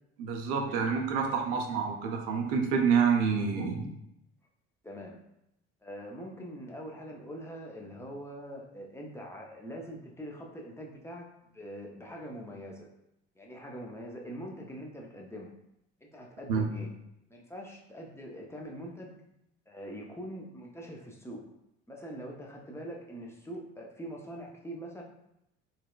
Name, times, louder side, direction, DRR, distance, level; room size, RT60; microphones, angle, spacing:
voice 1, 0.2-3.9 16.5-16.7, right 6 dB, 65° right, 1 dB, 0.7 m, -28 dB
voice 2, 4.8-5.2 5.8-11.3 11.5-12.9 13.4-15.5 16.0-16.9 17.3-19.1 19.7-21.5 21.9-25.0, equal, 10° left, -1 dB, 0.6 m, -43 dB
3.9 x 2.2 x 2.3 m, 0.83 s
figure-of-eight pair, 55°, 35 cm